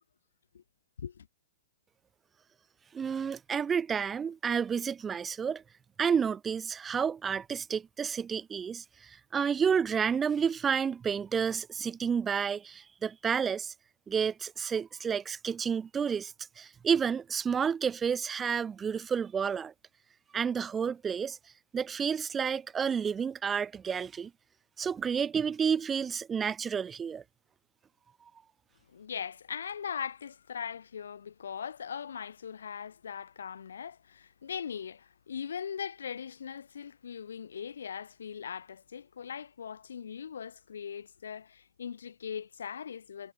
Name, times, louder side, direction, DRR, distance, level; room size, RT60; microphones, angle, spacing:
voice 1, 2.9-5.6 6.0-13.7 14.1-19.7 20.3-21.4 21.7-24.3 24.8-27.2, right 7 dB, 15° right, 2.4 m, -30 dB
voice 2, 28.9-43.3, left 7 dB, 85° left, 3.3 m, -40 dB
hypercardioid pair, 125°, 0 cm